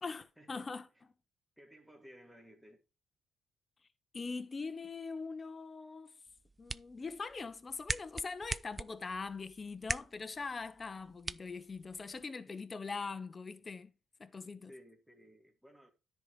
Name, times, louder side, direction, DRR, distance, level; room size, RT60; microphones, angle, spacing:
voice 1, 0.0-0.9 4.1-6.1 6.6-13.9 14.2-14.7, left 4 dB, 30° left, 1.0 m, -42 dB
voice 2, 1.6-2.8 14.6-15.9, equal, 5° right, 2.1 m, -57 dB
sound 1, 6.3-12.3, right 2 dB, 20° right, 0.4 m, -43 dB
10.0 x 4.6 x 4.9 m
cardioid pair, 90°, 0 cm